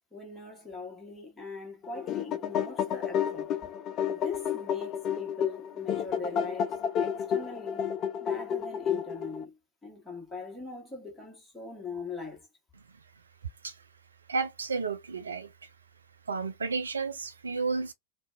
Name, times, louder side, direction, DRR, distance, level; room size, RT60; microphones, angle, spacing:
voice 1, 0.1-3.7 4.1-7.9 8.2-12.5, left 4 dB, 10° left, 1.3 m, -41 dB
sound 1, 1.8-9.5, left 8 dB, 35° left, 0.3 m, -31 dB
voice 2, 14.3-15.7 16.3-17.9, right 4 dB, 75° right, 0.3 m, -32 dB
2.7 x 2.2 x 2.3 m
figure-of-eight pair, 90°, 0 cm